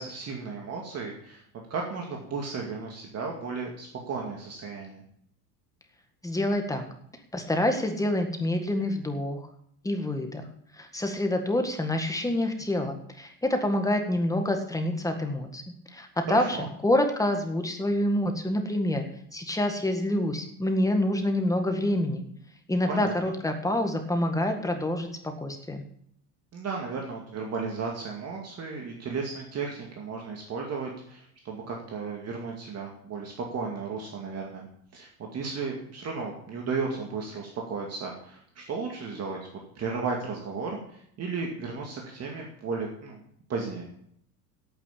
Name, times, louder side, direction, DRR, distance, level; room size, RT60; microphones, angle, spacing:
voice 1, 0.0-1.4 1.7-5.0 16.3-16.7 22.9-23.3 26.5-34.7 34.9-39.4 39.7-43.2 43.5-43.9, right 4 dB, 35° right, 0 dB, 2.3 m, -34 dB
voice 2, 6.2-6.8 7.3-9.4 9.8-10.4 10.8-15.6 15.9-16.6 16.8-19.0 19.3-22.2 22.7-25.1 25.4-25.8, left 1 dB, 5° left, 5 dB, 1.8 m, -27 dB
9.0 x 8.5 x 8.5 m, 0.70 s
supercardioid pair, 125°, 46 cm